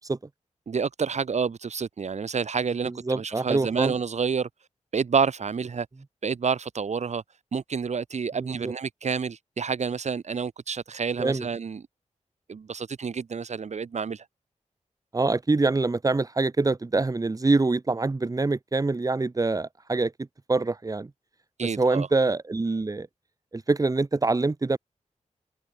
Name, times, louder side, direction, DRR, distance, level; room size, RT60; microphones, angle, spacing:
voice 1, 0.7-4.5 4.9-5.9 6.2-7.2 7.5-11.8 12.5-14.3 21.6-22.1, right 6 dB, 60° right, 1.8 m, -28 dB
voice 2, 3.1-3.9 8.4-8.7 11.2-11.5 15.1-20.1 20.5-21.1 21.8-23.1 23.5-24.8, right 3 dB, 25° right, 2.0 m, -25 dB
wide cardioid pair, 145°, 13 cm